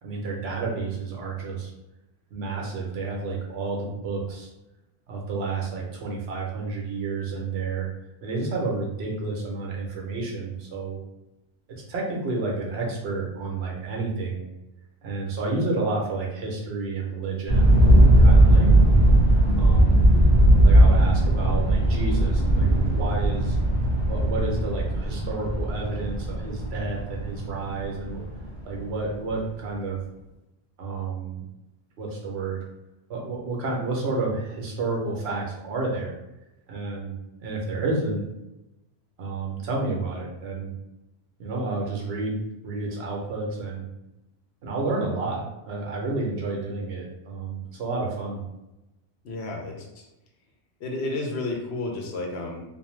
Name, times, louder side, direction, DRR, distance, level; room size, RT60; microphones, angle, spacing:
voice 1, 0.0-1.7 2.3-4.5 5.1-7.9 8.2-11.0 11.9-14.5 15.0-17.7 18.2-18.7 19.6-20.1 20.6-23.6 24.1-28.2 28.6-30.0 30.8-31.4 32.0-32.7 33.1-36.1 36.7-37.1 37.4-38.2 39.2-40.7 41.4-43.9 44.6-48.4, right 3 dB, 65° right, -2 dB, 0.9 m, -30 dB
sound 1, 17.5-29.0, right 1 dB, 45° left, 1.0 m, -18 dB
voice 2, 49.2-49.9 50.8-52.6, left 2 dB, 70° left, 0 dB, 0.9 m, -31 dB
2.6 x 2.2 x 3.0 m, 0.94 s
omnidirectional pair, 1.2 m